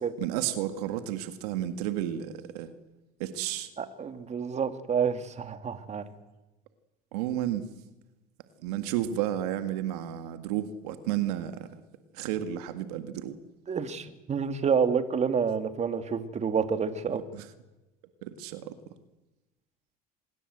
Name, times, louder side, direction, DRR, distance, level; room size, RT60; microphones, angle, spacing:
voice 1, 0.2-2.7 3.2-3.7 7.1-7.7 8.6-11.7 12.1-13.4 17.1-17.5 18.2-18.7, right 11 dB, 80° right, 10 dB, 1.9 m, -32 dB
voice 2, 3.8-6.0 13.7-17.2, right 6 dB, 35° right, 9 dB, 2.5 m, -28 dB
25.5 x 21.5 x 8.0 m, 1.0 s
supercardioid pair, 85°, 19 cm